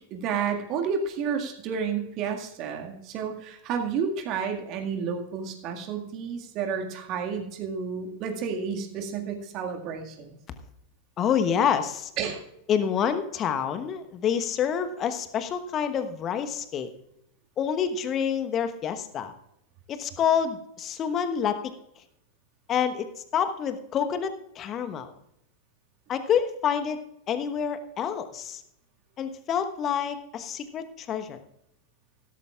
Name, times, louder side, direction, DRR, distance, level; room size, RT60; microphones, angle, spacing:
voice 1, 0.1-10.4 12.2-12.4, right 6 dB, 40° right, 3 dB, 1.9 m, -31 dB
voice 2, 11.2-12.1 12.7-16.9 17.6-19.3 19.9-21.7 22.7-25.1 26.1-28.6 29.2-31.4, left 8 dB, 30° left, 10 dB, 1.1 m, -27 dB
16.0 x 13.5 x 2.4 m, 0.81 s
figure-of-eight pair, 90°, 0 cm